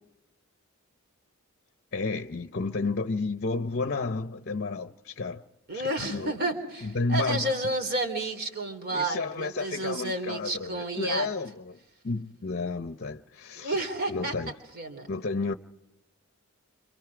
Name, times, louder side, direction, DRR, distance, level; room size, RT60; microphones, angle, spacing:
voice 1, 1.9-5.4 5.7-6.4 6.8-7.5 8.9-11.8 12.0-13.8 14.1-14.5 15.1-15.5, left 3 dB, 50° left, 0.7 m, -31 dB
voice 2, 5.7-11.3 13.6-14.3 14.7-15.1, right 2 dB, 45° right, 3.7 m, -31 dB
30.0 x 27.0 x 4.9 m
head